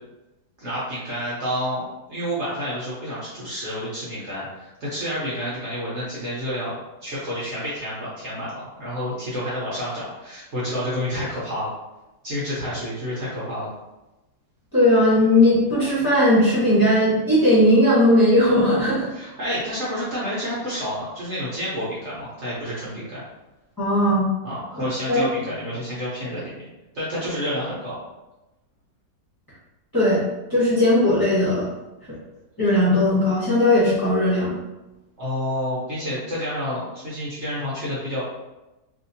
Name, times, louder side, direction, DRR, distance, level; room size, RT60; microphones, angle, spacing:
voice 1, 0.6-1.8 2.1-6.7 7.0-11.7 12.2-13.7 19.1-23.2 24.4-26.7 26.9-28.0 35.2-38.2, equal, 50° right, -8 dB, 1.1 m, -29 dB
voice 2, 14.7-19.1 23.8-24.2 25.1-25.2 29.9-30.2 30.5-31.7 32.6-34.6, left 1 dB, 15° left, -11 dB, 1.3 m, -18 dB
3.3 x 2.7 x 2.6 m, 1.0 s
omnidirectional pair, 1.7 m